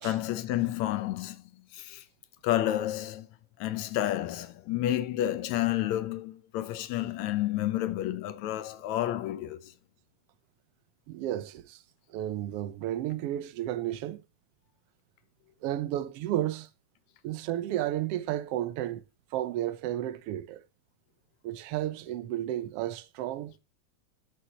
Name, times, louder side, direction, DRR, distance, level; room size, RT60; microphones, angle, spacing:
voice 1, 0.0-2.1 2.4-3.3 3.6-9.7, left 13 dB, 75° left, 2.1 m, -30 dB
voice 2, 11.1-11.8 12.1-14.2 15.6-16.7 17.2-19.0 19.3-20.6 21.4-23.6, right 13 dB, 70° right, 1.5 m, -32 dB
12.5 x 6.5 x 2.9 m
omnidirectional pair, 3.3 m